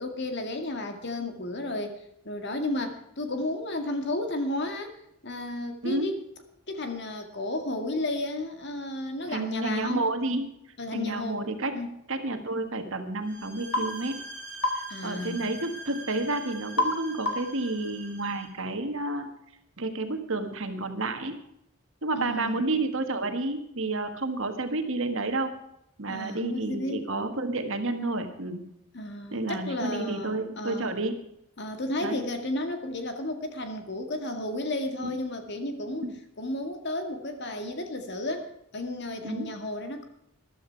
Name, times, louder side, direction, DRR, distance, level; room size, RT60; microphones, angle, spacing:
voice 1, 0.0-1.9 2.3-4.9 5.2-6.1 6.7-10.0 10.8-11.4 11.7-11.9 14.9-15.4 22.1-22.6 26.1-27.0 28.9-30.9 31.6-36.1 36.4-38.5 38.7-40.0, left 1 dB, 50° left, 6 dB, 2.1 m, -33 dB
voice 2, 9.3-10.5 10.9-11.8 12.1-14.2 14.7-19.3 19.8-21.4 22.0-25.6 26.0-28.6 29.3-31.1 32.0-32.2 35.0-35.2 36.0-36.1 39.2-39.5, right 2 dB, 60° right, 7 dB, 1.8 m, -30 dB
sound 1, 13.2-18.5, right 2 dB, 10° left, 6.4 m, -44 dB
sound 2, 13.7-13.9 14.6-14.8 16.8-17.0 17.3-17.6, left 1 dB, 80° left, 2.7 m, -26 dB
14.0 x 12.0 x 4.6 m, 0.80 s
head